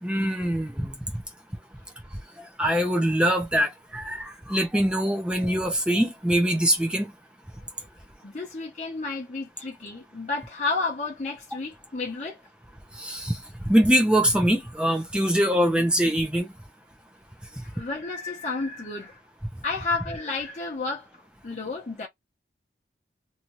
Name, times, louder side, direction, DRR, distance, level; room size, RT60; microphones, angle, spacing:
voice 1, 0.0-1.0 2.6-7.1 13.0-13.4 13.7-16.5, equal, 5° right, 0.6 m, -23 dB
voice 2, 8.2-12.4 17.6-19.2 19.6-21.1 21.4-22.1, left 3 dB, 40° left, 0.8 m, -31 dB
2.8 x 2.4 x 3.0 m
head